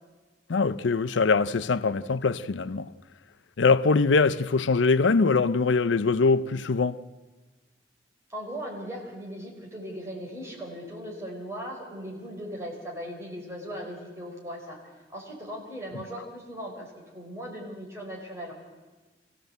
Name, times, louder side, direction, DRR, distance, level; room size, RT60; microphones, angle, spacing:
voice 1, 0.5-2.9 3.6-7.0, left 4 dB, 80° left, 0.6 m, -23 dB
voice 2, 8.3-14.8 15.1-18.5, equal, 15° right, 4.9 m, -38 dB
24.0 x 16.0 x 8.1 m
head